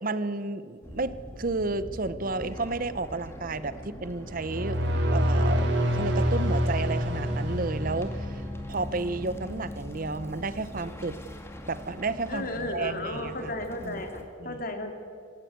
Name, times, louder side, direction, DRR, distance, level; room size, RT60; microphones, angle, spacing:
voice 1, 0.0-4.8 5.1-8.4 8.7-11.2 11.7-13.5 13.8-14.0 14.4-14.6, right 3 dB, 45° right, 14 dB, 0.8 m, -32 dB
sound 1, 0.8-14.2, left 1 dB, 15° left, 2.0 m, -41 dB
sound 2, 4.3-8.6, equal, 60° right, 3.7 m, -26 dB
voice 2, 12.3-14.9, left 1 dB, 45° left, 5 dB, 2.5 m, -34 dB
26.5 x 15.5 x 8.3 m, 2.4 s
head